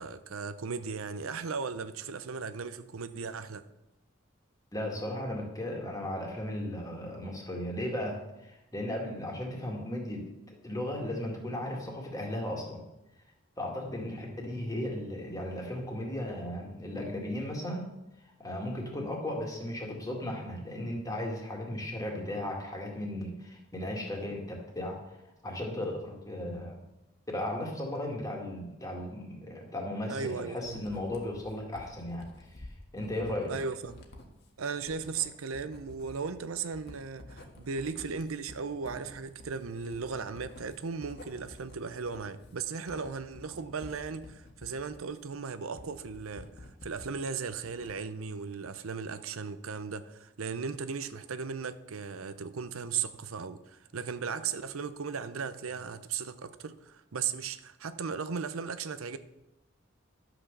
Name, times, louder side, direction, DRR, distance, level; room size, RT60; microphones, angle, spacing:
voice 1, 0.0-3.6 30.1-30.8 33.5-34.0 34.6-59.2, right 5 dB, 85° right, 0.6 m, -37 dB
voice 2, 4.7-12.8 13.6-17.9 18.2-25.0 25.4-26.8 27.3-33.5, left 1 dB, 15° left, 2.1 m, -36 dB
Writing, 30.6-47.2 47.5-48.2, left 2 dB, 50° left, 1.6 m, -51 dB
11.5 x 6.1 x 6.8 m
head